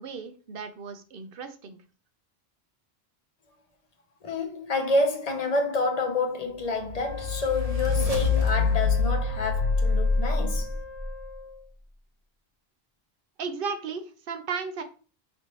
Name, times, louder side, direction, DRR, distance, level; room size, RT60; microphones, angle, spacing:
voice 1, 0.0-1.8 8.3-8.5 13.4-14.8, right 5 dB, 65° right, 0.8 m, -35 dB
voice 2, 4.2-10.7, left 2 dB, 45° left, 0.8 m, -28 dB
sound 1, 6.8-11.1, left 4 dB, 40° right, 0.9 m, -25 dB
Wind instrument woodwind instrument, 7.0-11.7, left 3 dB, 75° left, 1.0 m, -42 dB
5.1 x 3.1 x 3.0 m
omnidirectional pair, 1.0 m